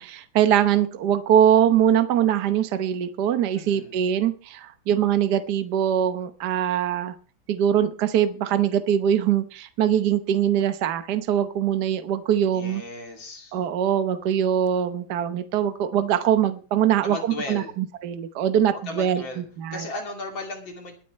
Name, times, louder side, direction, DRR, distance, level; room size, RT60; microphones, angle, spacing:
voice 1, 0.0-7.1 7.5-12.8 13.5-19.8, right 9 dB, 60° right, 9 dB, 1.4 m, -22 dB
voice 2, 3.5-4.0 12.4-13.6 17.0-17.7 18.9-19.4 19.7-20.9, left 3 dB, 70° left, 1 dB, 3.5 m, -36 dB
22.5 x 9.1 x 3.2 m, 0.37 s
omnidirectional pair, 2.2 m